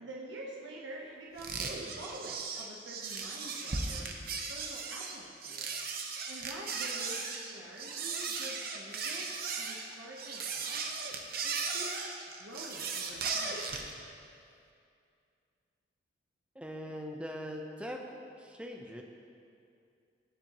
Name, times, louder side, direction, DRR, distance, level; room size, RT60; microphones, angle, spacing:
voice 1, 0.0-4.1 4.5-5.7 6.3-9.3 9.6-10.8 11.4-13.6, right 1 dB, 75° right, -3 dB, 1.0 m, -47 dB
sound 1, 1.4-13.9, right 4 dB, 50° right, 0.8 m, -37 dB
voice 2, 16.5-18.1 18.4-19.0, equal, 5° right, 2 dB, 0.6 m, -41 dB
17.0 x 7.4 x 3.0 m, 2.5 s
head